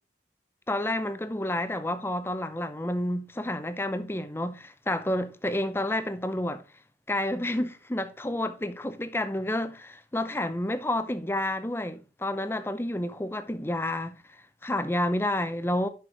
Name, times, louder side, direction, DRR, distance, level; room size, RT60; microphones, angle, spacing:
voice 1, 0.7-6.6 7.1-14.2 14.6-15.9, left 1 dB, 15° left, 0.5 m, -30 dB
6.3 x 6.0 x 4.6 m
head